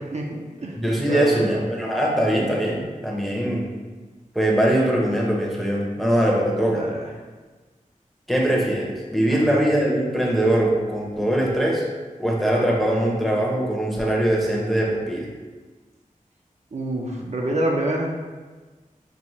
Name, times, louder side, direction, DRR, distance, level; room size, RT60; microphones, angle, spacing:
voice 1, 0.1-0.8 1.0-1.6 6.7-7.0 9.3-9.6 16.7-18.1, right 1 dB, 55° right, -1 dB, 0.5 m, -27 dB
voice 2, 0.8-3.7 4.3-6.8 8.3-11.8 12.2-15.3, right 1 dB, ahead, -3 dB, 0.7 m, -22 dB
5.2 x 2.1 x 3.0 m, 1.4 s
wide cardioid pair, 90°, 14 cm